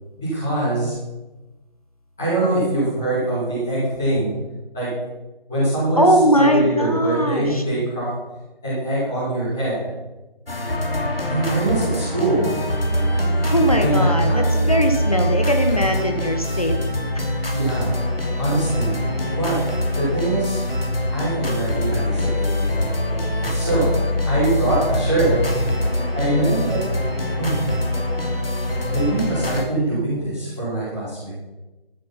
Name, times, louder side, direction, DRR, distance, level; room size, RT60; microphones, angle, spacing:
voice 1, 0.2-0.9 2.2-4.3 4.7-4.9 5.5-6.0 6.3-8.1 8.6-9.8 11.3-12.5 13.8-14.7 17.5-17.9 18.4-18.9 19.3-19.5 19.9-20.6 21.1-22.9 23.4-25.4 26.1-26.8 27.4-27.7 28.9-31.3, right 2 dB, 5° left, -16 dB, 1.4 m, -23 dB
voice 2, 6.0-7.6 13.4-16.8 17.1-17.3, equal, 40° left, 4 dB, 1.0 m, -20 dB
sound 1, 10.5-29.7, left 1 dB, 75° left, 2.8 m, -23 dB
13.5 x 6.6 x 5.8 m, 1.1 s
figure-of-eight pair, 170°, 29 cm